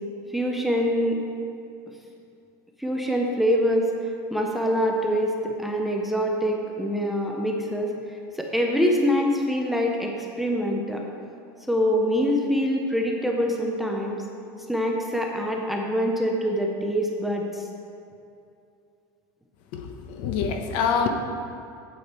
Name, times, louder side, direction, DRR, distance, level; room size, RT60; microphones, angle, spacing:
voice 1, 0.3-1.2 2.8-3.9 4.3-7.9 8.4-11.0 11.7-14.2 14.7-17.6, equal, ahead, 0 dB, 0.5 m, -24 dB
voice 2, 19.7-21.1, left 6 dB, 55° left, 5 dB, 0.9 m, -26 dB
8.5 x 8.4 x 4.3 m, 2.6 s
cardioid pair, 170°, 10 cm